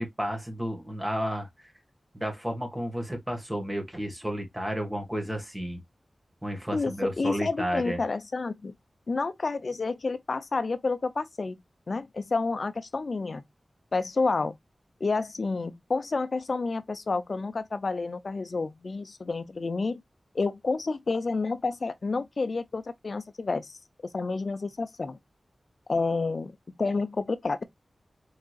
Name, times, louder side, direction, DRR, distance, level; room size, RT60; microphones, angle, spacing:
voice 1, 0.0-1.7 2.1-5.8 6.4-8.0, equal, 15° right, 1.7 m, -32 dB
voice 2, 6.7-8.7 9.1-11.6 11.9-13.4 13.9-14.5 15.0-20.0 20.3-23.8 24.1-25.2 25.9-27.6, left 3 dB, 65° left, 0.5 m, -29 dB
4.8 x 3.7 x 2.4 m
wide cardioid pair, 65°, 0 cm